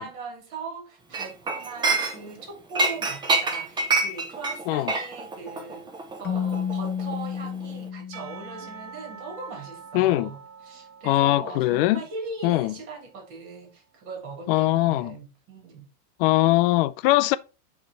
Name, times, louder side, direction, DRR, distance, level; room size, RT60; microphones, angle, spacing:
voice 1, 0.0-15.9, right 4 dB, 55° right, 3.5 m, -40 dB
Chink clink, 1.1-2.4 2.7-7.4 7.6-7.9, right 3 dB, 10° right, 0.6 m, -27 dB
Keyboard (musical), 6.2-9.0, left 7 dB, 25° left, 0.8 m, -31 dB
Percussion / Church bell, 8.1-13.4, right 6 dB, 70° right, 1.8 m, -46 dB
voice 2, 9.9-10.3 11.0-12.0 12.4-12.7 14.5-15.2 16.2-17.4, left 17 dB, 45° left, 0.5 m, -21 dB
9.3 x 3.4 x 4.2 m
supercardioid pair, 145°, 42 cm